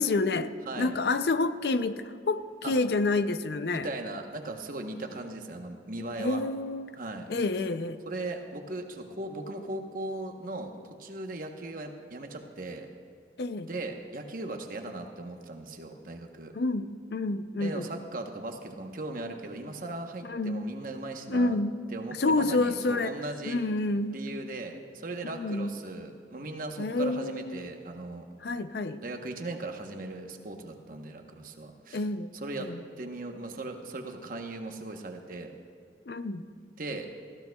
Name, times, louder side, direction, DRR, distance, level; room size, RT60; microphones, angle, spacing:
voice 1, 0.0-0.5 0.8-3.9 6.2-6.9 7.3-8.0 13.4-13.7 16.5-17.9 20.3-20.6 21.3-21.8 22.2-23.1 23.4-24.2 25.2-25.7 26.8-27.7 28.4-29.0 31.9-32.3 32.6-32.8 36.1-36.5, left 2 dB, 60° left, 12 dB, 0.5 m, -28 dB
voice 2, 0.7-1.0 2.6-2.7 3.7-6.4 7.0-7.3 8.1-10.7 11.0-12.9 13.7-16.5 17.6-21.6 21.9-23.6 24.1-28.3 29.0-32.0 32.4-32.7 33.0-35.5 36.8-37.1, right 2 dB, 50° right, 4 dB, 1.0 m, -38 dB
19.0 x 15.0 x 2.3 m, 2.4 s
head